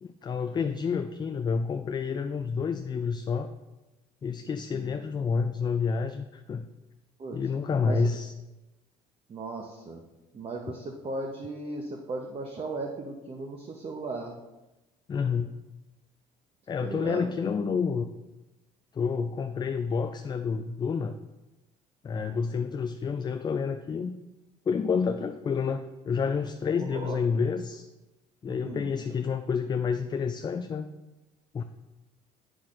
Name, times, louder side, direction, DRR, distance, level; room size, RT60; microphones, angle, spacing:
voice 1, 0.0-3.5 4.2-6.7 7.3-8.3 15.1-15.5 16.7-18.1 18.9-21.2 22.0-24.1 24.7-27.9 28.4-30.9 31.5-31.6, left 5 dB, 25° left, 8 dB, 0.4 m, -29 dB
voice 2, 9.3-10.0 10.3-14.3 16.8-17.3 26.7-27.2 28.6-28.9, right 3 dB, 35° right, 1 dB, 0.8 m, -36 dB
8.2 x 6.1 x 2.5 m, 1.0 s
hypercardioid pair, 65°, 17 cm